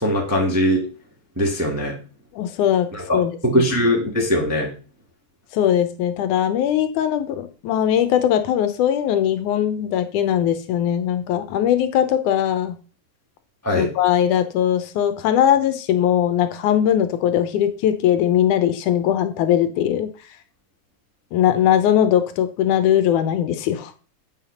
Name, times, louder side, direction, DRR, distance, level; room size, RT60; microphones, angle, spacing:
voice 1, 0.0-0.8 1.4-1.9 2.9-4.7 13.6-13.9, equal, 10° right, -1 dB, 0.9 m, -21 dB
voice 2, 2.4-2.9 3.1-3.4 5.5-12.8 13.7-20.1 21.3-23.9, left 10 dB, 80° left, 10 dB, 2.2 m, -20 dB
8.0 x 5.9 x 5.4 m, 0.36 s
omnidirectional pair, 3.6 m